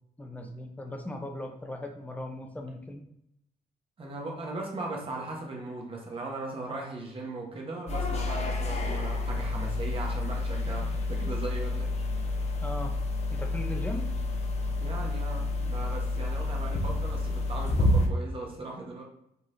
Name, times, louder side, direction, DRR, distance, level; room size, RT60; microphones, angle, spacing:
voice 1, 0.2-3.0 12.6-13.0 13.3-14.1, left 1 dB, 10° left, 3 dB, 0.8 m, -38 dB
voice 2, 4.0-11.9 14.8-19.0, right 2 dB, 35° right, -1 dB, 1.2 m, -38 dB
sound 1, 7.9-18.1, left 2 dB, 40° left, 0.8 m, -29 dB
4.7 x 4.0 x 2.7 m, 0.80 s
cardioid pair, 95°, 16 cm